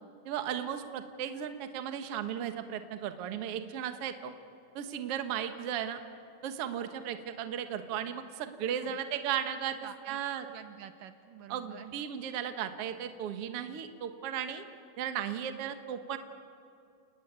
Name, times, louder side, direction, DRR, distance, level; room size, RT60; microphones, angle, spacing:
voice 1, 0.3-4.3 4.7-6.0 6.4-10.5 11.5-14.6 15.0-16.2, right 9 dB, 55° right, 8 dB, 1.8 m, -35 dB
voice 2, 8.4-9.0 9.7-12.0, right 9 dB, 75° right, 9 dB, 2.3 m, -50 dB
29.5 x 19.5 x 9.5 m, 2.6 s
omnidirectional pair, 4.3 m